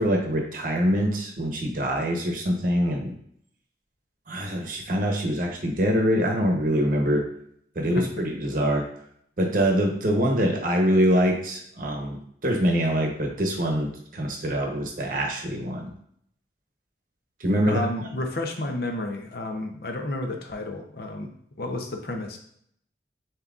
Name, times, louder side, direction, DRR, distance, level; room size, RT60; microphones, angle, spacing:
voice 1, 0.0-3.1 4.3-7.2 7.8-8.8 9.4-15.9 17.4-17.8, equal, 50° right, 1 dB, 0.8 m, -24 dB
voice 2, 17.7-21.3 21.6-22.4, left 2 dB, 60° left, 3 dB, 0.7 m, -31 dB
7.2 x 2.8 x 2.4 m, 0.67 s
head